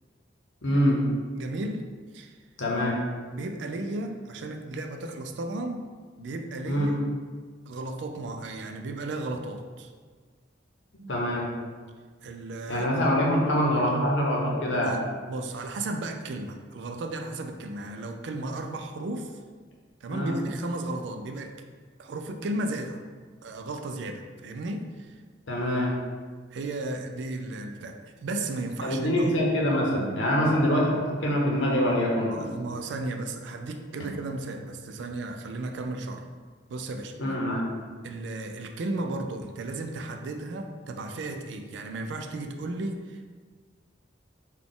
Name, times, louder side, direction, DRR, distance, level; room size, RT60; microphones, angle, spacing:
voice 1, 0.6-1.0 2.6-3.0 6.7-6.9 10.9-11.5 12.7-14.9 20.1-20.4 25.5-25.9 28.8-32.5 37.2-37.6, equal, 80° left, -2 dB, 0.8 m, -25 dB
voice 2, 1.3-1.8 2.1-2.4 3.3-5.8 6.2-7.1 7.7-9.9 12.2-12.9 14.7-15.0 15.3-19.3 20.0-21.5 22.0-23.0 23.4-25.2 26.5-29.3 32.3-36.2 36.7-37.1 38.0-43.3, right 2 dB, 70° right, 6 dB, 0.3 m, -34 dB
4.0 x 2.3 x 3.6 m, 1.5 s
head